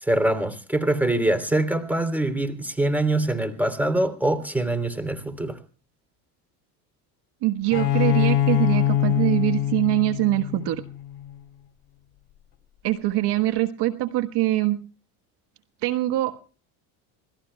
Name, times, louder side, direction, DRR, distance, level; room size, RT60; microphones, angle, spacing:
voice 1, 0.0-5.6, right 1 dB, 5° right, 3.2 m, -24 dB
voice 2, 7.4-10.8 12.8-14.8 15.8-16.3, right 16 dB, 60° right, 1.5 m, -23 dB
Bowed string instrument, 7.7-11.3, left 12 dB, 45° left, 3.5 m, -23 dB
26.5 x 18.0 x 2.2 m
supercardioid pair, 85°, 44 cm